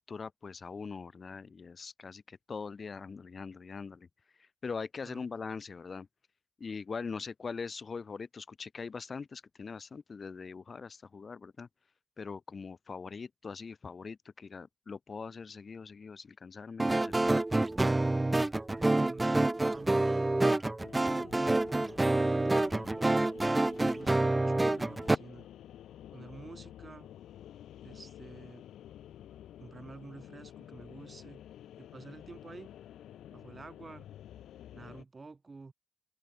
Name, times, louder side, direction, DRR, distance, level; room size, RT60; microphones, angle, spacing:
voice 1, 0.1-4.1 4.4-6.1 6.6-11.7 12.2-17.3, left 5 dB, 55° left, 2.2 m, -42 dB
sound 1, 16.8-25.2, right 2 dB, 25° right, 0.4 m, -27 dB
voice 2, 18.8-19.4 19.7-20.3 21.0-21.6 22.0-23.3 23.8-25.5 26.1-27.1 27.8-28.6 29.6-31.4 31.8-32.7 33.3-34.1 34.7-35.7, right 3 dB, 40° right, 4.3 m, -49 dB
sound 2, 20.8-35.0, left 11 dB, 85° left, 2.5 m, -51 dB
open air
supercardioid pair, 45°, 0 cm